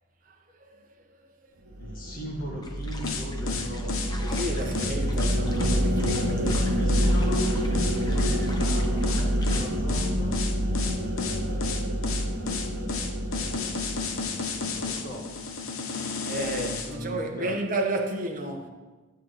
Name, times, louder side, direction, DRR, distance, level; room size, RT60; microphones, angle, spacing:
sound 1, 1.7-15.3, equal, 85° right, 1.1 m, -27 dB
voice 1, 1.8-4.2 6.7-10.4 14.7-15.3 16.7-17.5, equal, 40° left, 2.0 m, -38 dB
sound 2, 2.6-9.6, left 2 dB, 20° left, 0.7 m, -44 dB
sound 3, 3.0-16.9, left 5 dB, 75° left, 0.9 m, -32 dB
voice 2, 4.3-6.9 16.2-18.7, right 2 dB, 40° right, 1.0 m, -32 dB
9.1 x 7.6 x 4.8 m
head